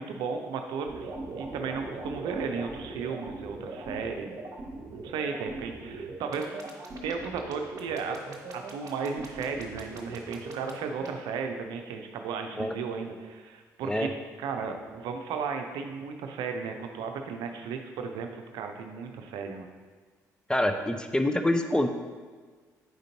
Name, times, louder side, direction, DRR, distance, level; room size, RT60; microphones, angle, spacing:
voice 1, 0.0-4.4 4.9-6.6 7.0-8.2 8.5-14.1 14.4-19.7, right 5 dB, 60° right, 5 dB, 0.6 m, -35 dB
sound 1, 0.9-11.1, right 3 dB, 40° right, 1.1 m, -39 dB
voice 2, 20.5-21.9, left 1 dB, 10° left, 6 dB, 0.6 m, -26 dB
7.8 x 5.1 x 2.8 m, 1.5 s
figure-of-eight pair, 45°, 9 cm